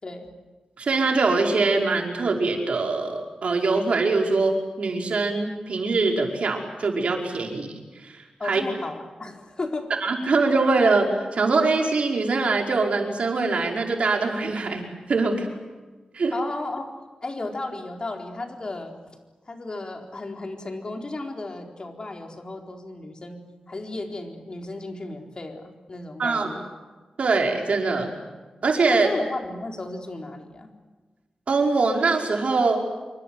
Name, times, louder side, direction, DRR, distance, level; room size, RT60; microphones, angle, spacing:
voice 1, 0.8-7.7 8.0-8.6 10.0-15.5 16.1-16.3 26.2-26.5 27.2-28.1 28.6-29.1 31.5-32.8, right 3 dB, 65° right, 2 dB, 5.3 m, -23 dB
voice 2, 8.4-9.9 16.3-16.9 17.2-18.9 19.5-23.4 23.7-26.7 28.9-30.7, left 2 dB, 40° left, 3 dB, 4.2 m, -34 dB
27.5 x 24.5 x 7.9 m, 1.3 s
wide cardioid pair, 110°, 2 cm